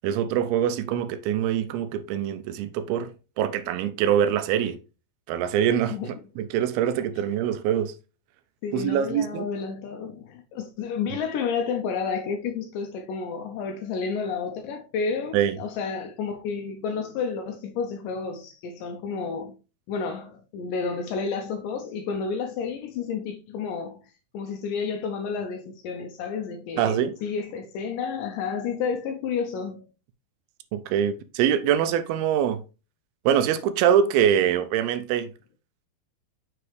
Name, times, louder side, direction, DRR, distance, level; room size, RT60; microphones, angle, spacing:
voice 1, 0.0-3.1 3.4-4.8 5.3-6.0 6.4-7.9 8.7-9.5 15.3-15.6 26.8-27.2 30.7-32.6 33.3-35.3, right 9 dB, 85° right, 2.4 m, -24 dB
voice 2, 8.6-19.5 19.9-24.0 24.3-29.8, left 5 dB, 80° left, 2.0 m, -31 dB
6.3 x 4.8 x 3.1 m
omnidirectional pair, 4.4 m